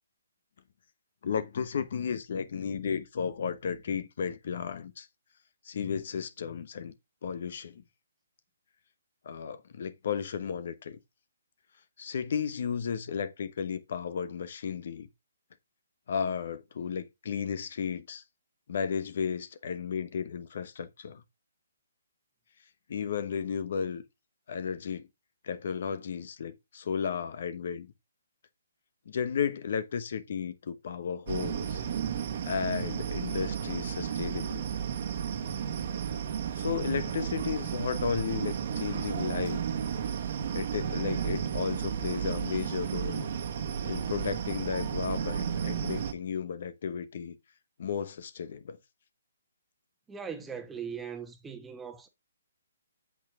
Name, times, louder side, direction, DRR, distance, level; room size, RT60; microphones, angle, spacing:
voice 1, 1.2-5.1 5.6-6.9 7.2-7.8 9.2-11.0 12.0-15.1 16.1-18.2 18.7-21.2 22.9-24.0 24.5-25.1 25.4-27.9 29.1-31.8 32.4-34.7 36.5-39.6 40.5-43.3 43.8-47.4 47.8-48.8, left 7 dB, 55° left, 1.0 m, -34 dB
sound 1, 31.3-46.1, right 8 dB, 50° right, 1.3 m, -33 dB
voice 2, 50.1-52.1, right 6 dB, 10° right, 1.1 m, -40 dB
8.4 x 6.3 x 3.6 m
hypercardioid pair, 155°, 0 cm